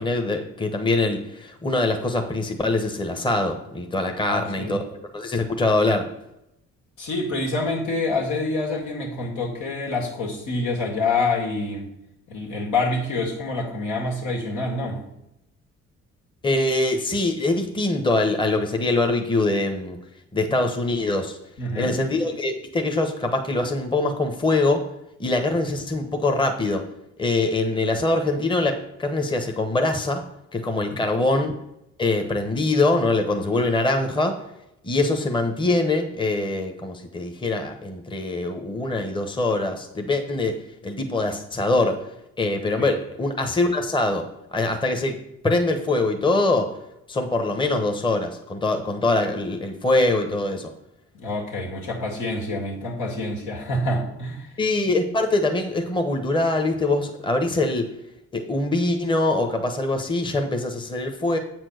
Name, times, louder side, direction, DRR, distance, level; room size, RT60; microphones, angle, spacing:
voice 1, 0.0-4.8 5.1-6.1 16.4-20.0 20.3-21.4 21.8-24.8 25.2-26.8 27.2-30.2 30.5-31.5 32.0-34.4 34.8-42.1 42.4-44.2 44.5-45.2 45.4-46.7 47.1-50.7 54.6-57.9 58.3-61.4, left 2 dB, 15° left, 5 dB, 0.9 m, -23 dB
voice 2, 4.3-4.8 7.0-11.9 12.3-15.0 21.6-22.0 30.9-31.0 42.8-42.9 51.1-54.5, left 2 dB, 80° left, -1 dB, 2.2 m, -27 dB
7.4 x 4.5 x 6.4 m, 0.84 s
cardioid pair, 90°, 30 cm